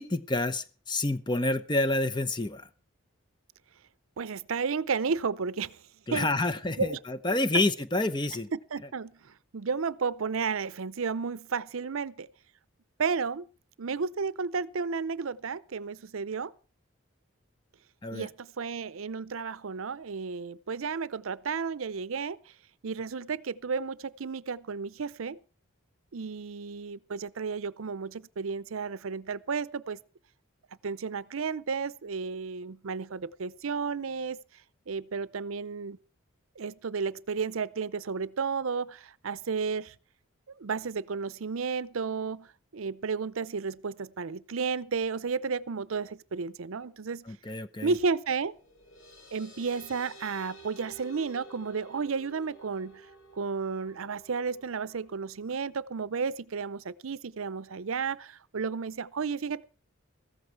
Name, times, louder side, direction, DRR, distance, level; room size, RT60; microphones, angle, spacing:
voice 1, 0.0-2.7 6.1-8.5 18.0-18.3 47.3-47.9, left 2 dB, 20° left, 0.7 m, -28 dB
voice 2, 4.2-5.8 6.1-6.3 6.8-7.0 7.3-7.4 8.5-12.3 13.0-13.5 13.8-16.5 18.1-22.4 22.8-25.4 26.1-30.0 30.8-34.4 34.9-36.0 36.6-39.9 40.6-42.5 42.7-47.2 47.8-48.5 49.3-53.0 53.3-59.6, right 5 dB, 80° right, 0.6 m, -32 dB
sound 1, 48.5-55.6, right 2 dB, 65° left, 2.7 m, -52 dB
15.0 x 13.5 x 4.6 m
head